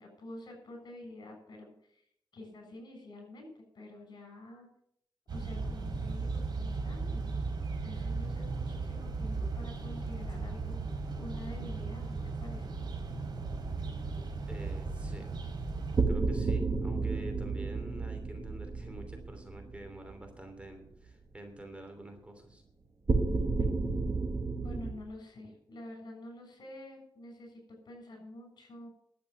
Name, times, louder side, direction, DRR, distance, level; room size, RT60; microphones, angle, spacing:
voice 1, 0.0-2.0 2.3-4.7 5.3-7.5 7.8-10.8 11.2-12.7 24.6-28.9, left 1 dB, 60° left, 3 dB, 7.2 m, -48 dB
sound 1, 5.3-16.0, right 4 dB, 60° right, 5.4 m, -36 dB
sound 2, 12.6-13.1 15.9-20.2 23.1-24.9, right 3 dB, 40° right, 1.9 m, -31 dB
voice 2, 14.5-15.3 16.1-22.6, right 1 dB, 15° right, 5 dB, 3.1 m, -47 dB
12.0 x 8.4 x 9.2 m, 0.70 s
cardioid pair, 90°, 8 cm